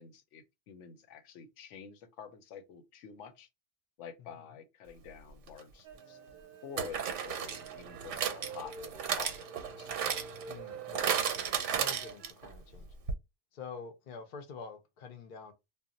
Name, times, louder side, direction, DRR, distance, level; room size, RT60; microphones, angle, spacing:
voice 1, 0.0-3.5 4.0-6.2 6.6-9.9, left 7 dB, 80° left, 0.9 m, -49 dB
sound 1, 5.5-5.6 6.8-12.5 12.8-12.9 13.1-13.2, right 7 dB, 85° right, 0.9 m, -34 dB
sound 2, 5.8-12.3, right 5 dB, 55° right, 0.6 m, -49 dB
voice 2, 10.5-12.9 13.5-15.5, left 5 dB, 55° left, 0.5 m, -47 dB
2.3 x 2.0 x 3.7 m
omnidirectional pair, 1.2 m